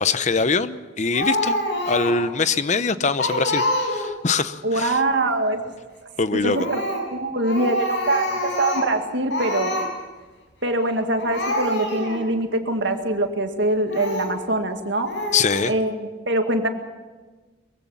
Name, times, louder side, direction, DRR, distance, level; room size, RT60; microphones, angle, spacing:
voice 1, 0.0-1.6 1.9-5.0 6.2-6.7 15.3-15.7, left 4 dB, 40° left, 13 dB, 0.7 m, -23 dB
Speech, 1.1-2.3 2.7-2.8 3.2-4.3 6.5-7.1 7.4-9.0 9.3-9.9 10.8-10.9 11.2-12.2 12.8-12.9 13.9-14.4 15.1-15.6, left 1 dB, 70° left, 5.8 m, -26 dB
voice 2, 4.6-5.7 6.4-6.8 7.1-9.8 10.6-15.1 15.7-16.7, right 2 dB, 70° right, 5 dB, 2.1 m, -23 dB
22.5 x 16.0 x 7.3 m, 1.3 s
head